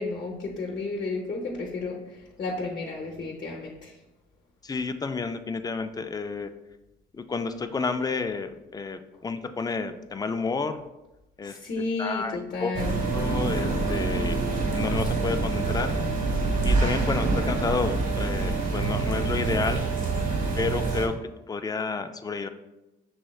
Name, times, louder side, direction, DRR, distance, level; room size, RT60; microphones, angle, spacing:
voice 1, 0.0-3.9 11.4-13.0, left 3 dB, 45° left, -1 dB, 0.8 m, -32 dB
voice 2, 4.6-6.5 7.1-10.8 11.4-11.6 12.0-12.7 13.1-14.4 14.7-16.0 16.6-19.9 20.6-21.1 21.5-22.5, left 4 dB, 20° left, 9 dB, 0.3 m, -30 dB
sound 1, 12.7-21.1, right 3 dB, 40° right, 1.2 m, -26 dB
6.3 x 3.1 x 2.3 m, 0.98 s
cardioid pair, 90°, 20 cm